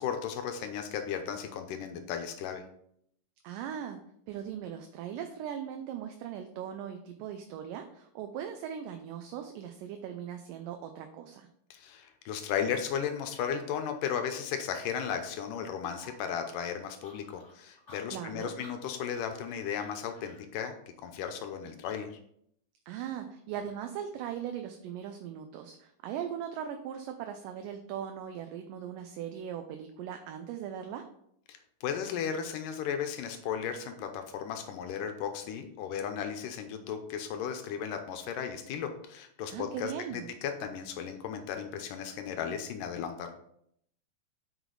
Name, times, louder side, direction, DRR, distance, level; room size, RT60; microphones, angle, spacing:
voice 1, 0.0-2.6 11.7-22.1 31.5-43.3, left 7 dB, 80° left, 6 dB, 2.2 m, -35 dB
voice 2, 3.4-4.0 4.3-11.5 18.1-18.5 22.9-31.1 39.5-40.3, right 9 dB, 80° right, 6 dB, 2.2 m, -39 dB
sound 1, 15.9-20.4, left 2 dB, 25° left, 2.0 m, -56 dB
8.2 x 4.8 x 3.9 m, 0.70 s
omnidirectional pair, 3.9 m